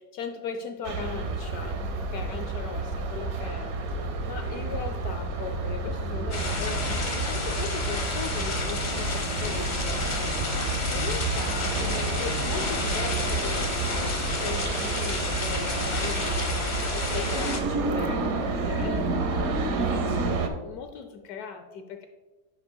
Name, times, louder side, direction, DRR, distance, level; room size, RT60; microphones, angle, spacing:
voice 1, 0.0-10.6 10.9-16.6 16.9-22.0, left 6 dB, 80° left, 6 dB, 0.8 m, -38 dB
sound 1, 0.8-20.5, right 3 dB, 60° right, 1.0 m, -30 dB
sound 2, 3.5-15.9, right 1 dB, 5° left, 2.3 m, -44 dB
sound 3, 6.3-17.6, left 3 dB, 45° left, 0.6 m, -31 dB
10.0 x 6.7 x 2.2 m, 1.2 s
omnidirectional pair, 2.2 m